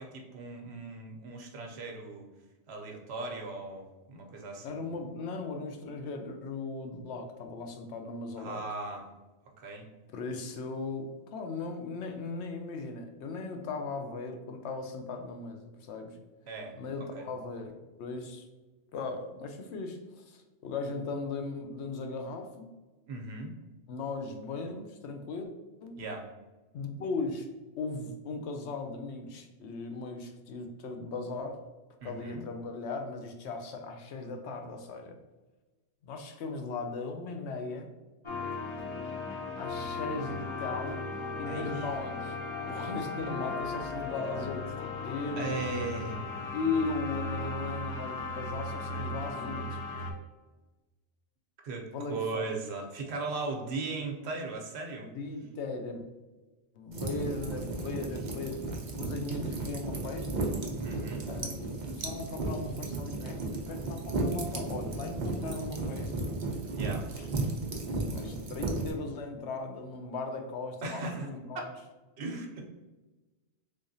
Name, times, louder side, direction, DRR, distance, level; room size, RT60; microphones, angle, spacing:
voice 1, 0.0-2.3 2.7-4.8 8.4-9.0 9.6-9.9 16.5-16.7 17.0-17.3 23.1-23.5 26.0-26.3 32.0-32.4 41.5-41.8 45.4-46.2 51.6-55.1 60.8-61.3 66.7-67.1 70.8-71.3 72.2-72.6, right 3 dB, 75° right, 2 dB, 0.9 m, -38 dB
voice 2, 4.6-8.6 10.1-16.2 16.8-18.5 18.9-22.7 23.9-25.5 25.8-26.0 26.7-27.5 27.8-31.6 32.0-35.2 36.0-37.9 39.6-41.1 41.4-42.4 42.7-45.6 46.5-49.8 51.9-52.5 53.5-53.8 55.0-56.1 56.7-58.6 59.0-60.5 61.3-66.3 67.1-67.3 68.0-71.7, left 3 dB, 85° left, 5 dB, 0.9 m, -38 dB
sound 1, 38.2-50.1, left 3 dB, 40° left, 0.4 m, -37 dB
sound 2, 56.9-68.9, right 2 dB, 50° right, 0.7 m, -34 dB
3.5 x 3.4 x 2.6 m, 1.1 s
omnidirectional pair, 1.1 m